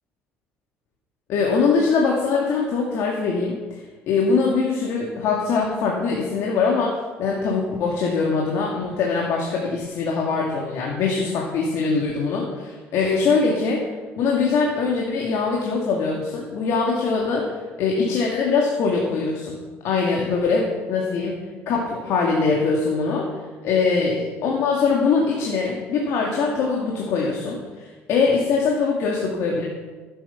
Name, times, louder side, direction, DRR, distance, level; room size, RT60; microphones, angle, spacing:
voice 1, 1.3-3.8 4.1-13.8 14.2-17.5 17.8-19.6 19.8-21.4 21.7-23.3 23.6-29.6, left 4 dB, 70° left, -1 dB, 2.3 m, -22 dB
14.5 x 8.6 x 5.8 m, 1.4 s
cardioid pair, 100°, 5 cm